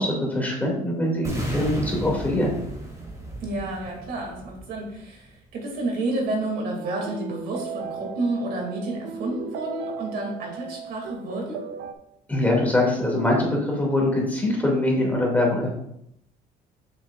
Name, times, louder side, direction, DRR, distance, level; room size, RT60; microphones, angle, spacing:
voice 1, 0.0-2.5 12.3-15.7, left 1 dB, 10° left, -2 dB, 2.3 m, -23 dB
sound 1, 1.2-5.3, right 1 dB, 20° right, 2.3 m, -34 dB
voice 2, 3.4-11.6, right 2 dB, 65° right, 0 dB, 2.5 m, -30 dB
sound 2, 6.8-11.9, right 6 dB, 90° right, 0.6 m, -36 dB
7.4 x 6.1 x 2.4 m, 0.76 s
cardioid pair, 110°, 17 cm